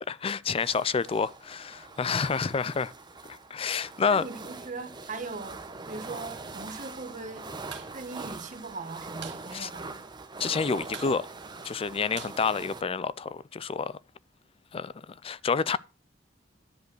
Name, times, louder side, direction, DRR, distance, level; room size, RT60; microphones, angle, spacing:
voice 1, 0.1-2.9 3.3-4.3 9.5-9.7 10.4-11.3 11.6-14.0 14.7-15.8, left 5 dB, 30° left, 0.4 m, -29 dB
sound 1, 0.6-12.8, right 3 dB, 25° right, 0.8 m, -43 dB
voice 2, 4.1-5.6 5.9-7.5 7.9-9.9, right 3 dB, 40° right, 1.4 m, -39 dB
sound 2, 7.7-7.9 8.2-8.3 8.6-9.4 9.8-9.9 10.1-10.5 10.9-13.2, right 8 dB, 65° right, 1.8 m, -45 dB
10.5 x 5.3 x 6.1 m
head